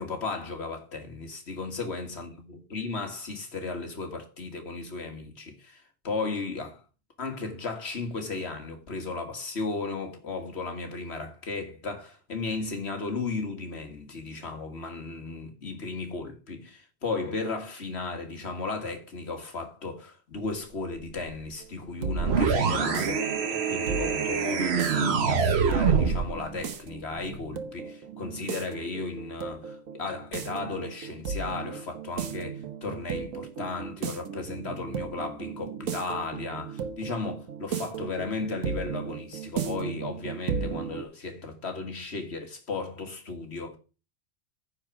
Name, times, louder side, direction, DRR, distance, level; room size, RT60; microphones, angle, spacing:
voice 1, 0.0-6.8 7.2-43.8, left 3 dB, 55° left, 2.2 m, -35 dB
sound 1, 21.6-41.0, right 6 dB, 80° right, 1.4 m, -36 dB
sound 2, 22.2-26.3, right 5 dB, 55° right, 1.2 m, -25 dB
9.9 x 4.9 x 6.2 m
omnidirectional pair, 1.4 m